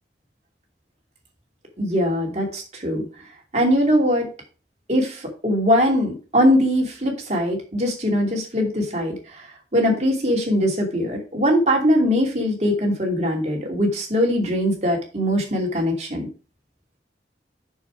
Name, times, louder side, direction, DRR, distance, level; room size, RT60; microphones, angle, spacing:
voice 1, 1.8-3.1 3.5-4.3 4.9-16.3, equal, 40° right, 0 dB, 2.8 m, -21 dB
7.2 x 6.8 x 4.8 m, 0.35 s
head